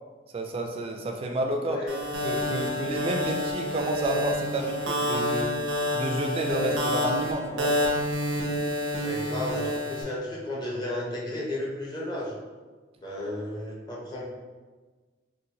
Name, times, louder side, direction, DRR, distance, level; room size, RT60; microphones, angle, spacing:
voice 1, 0.3-1.8 2.2-5.5 5.9-7.8, right 1 dB, 30° right, 3 dB, 0.3 m, -30 dB
voice 2, 1.7-2.0 9.0-12.3 13.0-14.2, left 1 dB, 25° left, -4 dB, 0.6 m, -33 dB
sound 1, 1.9-10.0, left 1 dB, 90° right, 0.6 m, -28 dB
3.8 x 2.1 x 2.8 m, 1.4 s
head